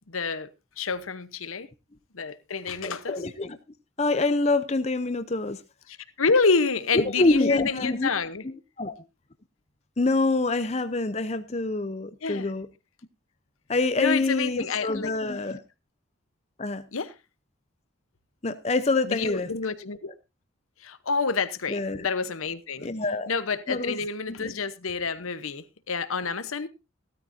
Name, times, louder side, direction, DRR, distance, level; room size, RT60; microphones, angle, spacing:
voice 1, 0.1-0.5 0.8-1.7 2.1-3.2 5.9-8.5 12.2-12.6 14.0-15.1 16.9-17.1 19.1-20.1 20.8-22.9 23.3-26.7, left 4 dB, 85° left, 1.0 m, -28 dB
voice 2, 2.8-3.6 4.0-5.6 6.9-8.1 8.8-8.9 10.0-12.7 13.7-15.6 16.6-16.8 18.4-19.5 21.7-22.1 22.8-23.3 23.7-24.0 24.4-24.5, left 3 dB, 30° left, 0.7 m, -26 dB
16.0 x 13.0 x 2.7 m
head